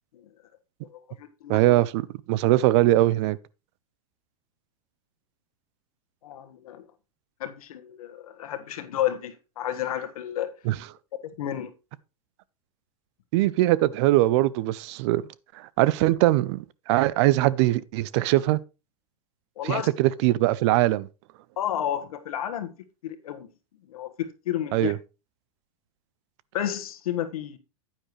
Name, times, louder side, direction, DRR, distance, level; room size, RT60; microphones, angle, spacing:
voice 1, 0.9-1.8 6.2-6.8 7.4-10.5 11.4-11.7 19.6-19.9 21.6-22.7 23.0-23.5 23.9-24.9 26.5-27.6, left 11 dB, 80° left, 1.4 m, -31 dB
voice 2, 1.5-3.4 10.7-10.8 13.3-15.2 15.6-18.6 19.6-21.1 24.7-25.0, right 16 dB, 50° right, 0.5 m, -21 dB
9.8 x 9.1 x 3.1 m
supercardioid pair, 135°, 19 cm